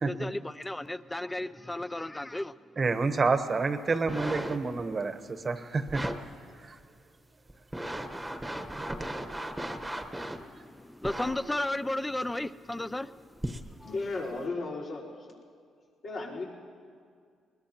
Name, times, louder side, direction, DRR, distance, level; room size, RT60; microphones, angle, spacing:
voice 1, 0.1-2.7 10.0-13.9, left 1 dB, 10° left, 15 dB, 0.4 m, -35 dB
voice 2, 2.8-6.0 6.7-6.8 8.8-8.9, right 4 dB, 35° right, 8 dB, 1.0 m, -29 dB
sound 1, 3.9-4.8 5.9-6.2 6.8-6.9 7.5-10.5 11.0-11.4 12.3-12.4 13.4-13.7 14.4-14.5, right 1 dB, 5° right, 1.1 m, -36 dB
voice 3, 13.8-15.4 16.0-16.4, left 3 dB, 60° left, -6 dB, 4.2 m, -35 dB
21.0 x 21.0 x 2.9 m, 2.2 s
cardioid pair, 90°, 0 cm